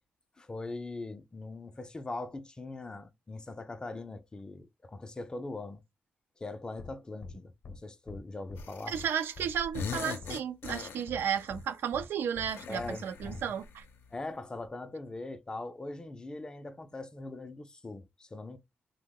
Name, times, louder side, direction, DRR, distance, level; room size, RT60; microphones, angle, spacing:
voice 1, 0.4-5.8 6.4-9.0 12.7-13.6 14.1-18.6, left 2 dB, 20° left, 0.3 m, -41 dB
sound 1, 6.8-6.9 7.2-7.3 7.6-7.8 8.1-8.2 8.5-8.6 8.9-9.1 9.4-9.5 9.8-10.3 10.6-10.8 11.1-11.2 11.5-11.6 11.9-12.1 12.4-12.5 12.8-12.9 13.2-13.4, left 4 dB, 50° left, 0.7 m, -44 dB
sound 2, 8.6-9.2 9.5-11.5 12.5-14.0, left 6 dB, 90° left, 0.5 m, -41 dB
voice 2, 8.9-13.8, right 8 dB, 80° right, 0.3 m, -33 dB
2.9 x 2.0 x 3.6 m
cardioid pair, 120°, 4 cm